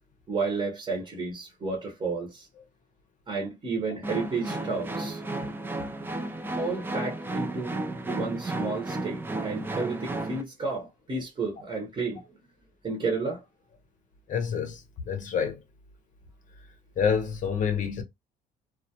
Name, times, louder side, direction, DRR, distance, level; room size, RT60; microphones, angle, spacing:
voice 1, 0.3-2.5 3.3-5.2 6.6-7.8 8.1-12.2 12.8-13.4, right 4 dB, 30° right, 0.9 m, -32 dB
sound 1, 4.0-10.4, right 2 dB, 10° right, 0.4 m, -33 dB
voice 2, 14.3-15.6 17.0-18.0, left 7 dB, 50° left, 0.6 m, -28 dB
2.3 x 2.0 x 2.7 m
cardioid pair, 110°, 17 cm